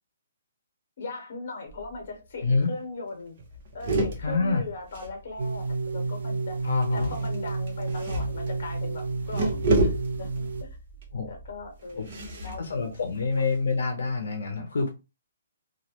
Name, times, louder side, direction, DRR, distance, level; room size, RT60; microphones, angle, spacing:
voice 1, 1.0-3.4 3.7-6.6 6.9-10.8 11.3-12.8, left 3 dB, 45° left, 1.0 m, -39 dB
sound 1, 1.7-2.1 2.4-2.5 2.8-3.0 3.4-5.7 6.8-13.7, right 2 dB, 35° right, 0.6 m, -31 dB
voice 2, 2.4-2.7 4.2-4.6 6.6-7.1 11.1-11.4 12.0-12.1 12.6-14.9, left 3 dB, 75° left, 0.6 m, -26 dB
sound 2, 5.4-10.6, right 3 dB, 80° right, 0.6 m, -31 dB
2.3 x 2.1 x 2.8 m
hypercardioid pair, 175°, 0 cm